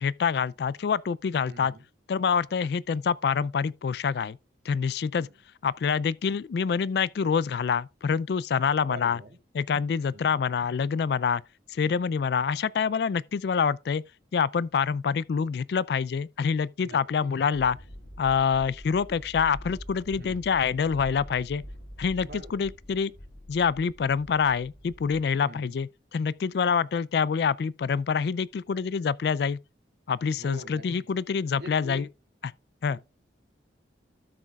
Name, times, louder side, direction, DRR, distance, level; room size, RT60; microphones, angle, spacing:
voice 1, 0.0-1.7 2.1-4.4 4.7-5.3 5.6-9.2 9.5-11.4 11.7-14.0 14.3-17.8 18.2-21.6 22.0-23.1 23.5-29.6 30.1-32.1 32.4-32.5 32.8-33.0, left 6 dB, 60° left, 0.3 m, -26 dB
voice 2, 1.5-1.8 5.1-5.3 8.9-9.4 10.1-10.4 16.8-17.3 20.2-20.4 22.2-22.7 25.4-25.8 30.4-31.1 31.5-32.1 32.9-33.0, right 1 dB, 60° right, 2.3 m, -44 dB
sound 1, 17.5-25.3, equal, 80° left, 5.7 m, -45 dB
13.0 x 6.2 x 2.3 m
head